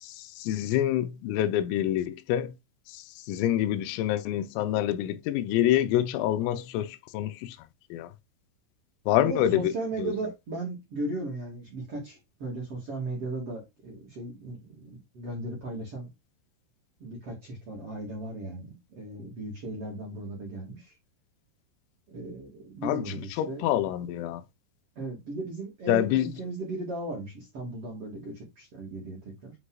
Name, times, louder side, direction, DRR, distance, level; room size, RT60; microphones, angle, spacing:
voice 1, 0.0-2.5 2.9-7.6 7.9-8.1 9.1-9.7 10.0-10.1 22.8-23.0 23.4-24.4 25.9-26.3, left 12 dB, 85° left, 3.5 m, -27 dB
voice 2, 9.2-16.1 17.0-20.9 22.1-23.7 25.0-29.5, right 2 dB, 45° right, 2.0 m, -36 dB
9.5 x 4.9 x 2.4 m
omnidirectional pair, 5.9 m